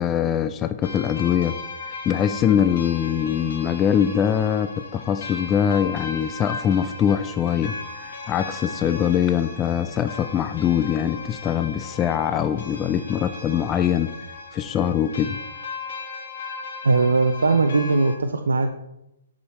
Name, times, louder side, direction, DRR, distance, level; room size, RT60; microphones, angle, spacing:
voice 1, 0.0-1.6 2.1-7.8 8.3-14.1 14.5-15.4, left 9 dB, 20° left, 10 dB, 0.3 m, -22 dB
sound 1, 0.8-18.2, left 4 dB, 65° left, 1.3 m, -37 dB
voice 2, 16.8-18.7, right 3 dB, 80° right, 5 dB, 0.5 m, -20 dB
7.0 x 6.2 x 3.1 m, 0.87 s
hypercardioid pair, 125°, 0 cm